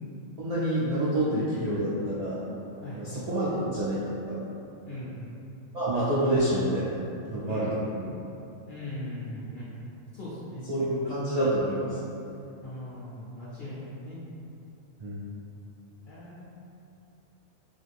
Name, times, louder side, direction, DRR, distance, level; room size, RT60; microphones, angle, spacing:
voice 1, 0.4-2.4 2.9-4.4 5.7-7.0 7.3-8.1 10.7-11.9 15.0-15.2, right 1 dB, 60° right, -10 dB, 0.4 m, -27 dB
voice 2, 4.9-5.3 7.5-7.8 8.7-9.7 10.1-10.7 12.6-14.2 16.1-16.5, left 1 dB, 60° left, -10 dB, 0.5 m, -39 dB
2.5 x 2.4 x 3.3 m, 2.8 s
omnidirectional pair, 1.4 m